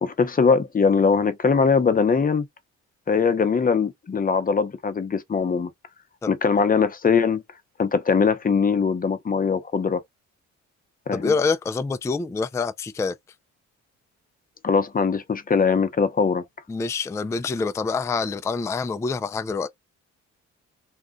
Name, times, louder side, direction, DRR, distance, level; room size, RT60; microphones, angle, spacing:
voice 1, 0.0-2.4 3.1-5.7 6.3-7.4 7.8-10.0 11.1-11.3 14.6-16.4, left 5 dB, 30° left, 0.8 m, -21 dB
voice 2, 11.1-13.2 16.7-19.7, left 4 dB, 10° left, 0.3 m, -26 dB
2.4 x 2.3 x 3.7 m
cardioid pair, 90°, 30 cm